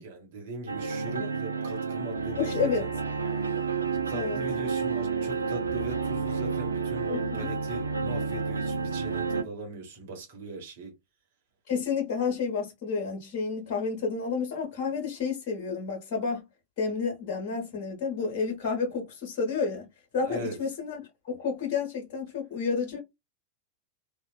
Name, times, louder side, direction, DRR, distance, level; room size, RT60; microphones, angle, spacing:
voice 1, 0.0-2.9 3.8-10.9 20.2-20.6, right 2 dB, 55° right, 1.0 m, -39 dB
sound 1, 0.7-9.4, right 5 dB, 80° right, 0.4 m, -30 dB
voice 2, 2.4-2.9 4.1-4.4 7.1-7.4 11.7-16.4 16.8-19.9 20.1-23.0, left 5 dB, 45° left, 1.0 m, -30 dB
2.7 x 2.3 x 2.2 m
figure-of-eight pair, 90°, 0 cm